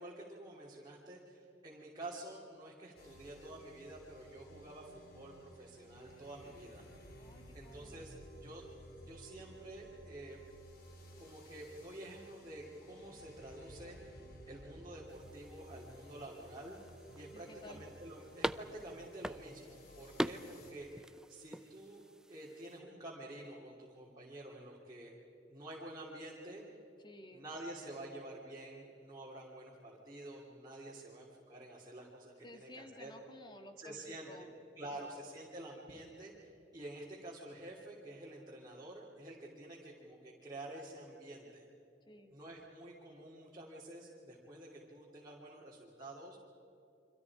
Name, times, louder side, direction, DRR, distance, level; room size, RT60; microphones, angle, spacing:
voice 1, 0.0-6.8 7.5-8.2 8.4-8.7 9.0-10.4 11.2-14.2 14.5-16.8 17.1-25.1 25.5-26.6 27.3-33.1 33.8-34.5 34.8-41.7 42.3-46.4, right 1 dB, 20° right, -5 dB, 3.1 m, -49 dB
sound 1, 3.0-20.7, equal, 55° left, 3.8 m, -55 dB
voice 2, 7.2-8.0 17.3-17.8 18.2-18.3 27.0-27.5 32.4-34.5 34.9-35.1 42.1-42.3, left 1 dB, 25° left, 5 dB, 2.0 m, -54 dB
sound 2, 15.1-22.8, right 1 dB, 5° right, 0.5 m, -44 dB
29.5 x 25.5 x 4.9 m, 2.9 s
head